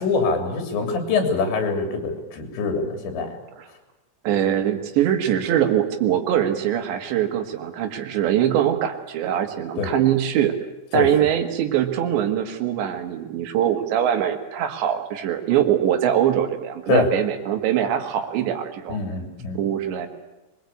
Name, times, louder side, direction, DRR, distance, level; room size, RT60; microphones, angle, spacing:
voice 1, 0.0-3.4 9.8-9.9 10.9-11.1 16.9-17.1 18.9-19.6, left 4 dB, 85° left, 5 dB, 5.4 m, -24 dB
voice 2, 4.2-10.5 10.9-19.0 19.5-20.1, right 10 dB, 85° right, 7 dB, 4.1 m, -22 dB
24.5 x 21.0 x 8.6 m, 1.0 s
omnidirectional pair, 4.9 m